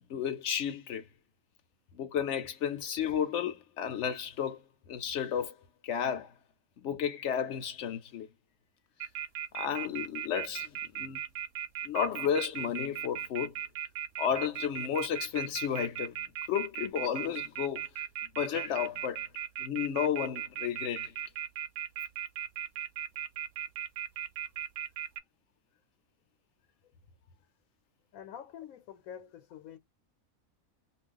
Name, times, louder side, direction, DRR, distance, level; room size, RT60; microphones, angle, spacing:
voice 1, 0.1-1.1 2.0-4.6 4.9-5.5 5.8-6.3 6.8-8.3 9.5-11.2 11.8-13.5 14.2-16.2 16.5-17.9 18.4-19.2 19.6-21.1, left 8 dB, 65° left, 0.8 m, -32 dB
sound 1, 9.0-25.2, right 10 dB, 80° right, 1.0 m, -37 dB
voice 2, 28.1-29.8, left 9 dB, 85° left, 1.0 m, -47 dB
2.3 x 2.3 x 3.6 m
omnidirectional pair, 1.5 m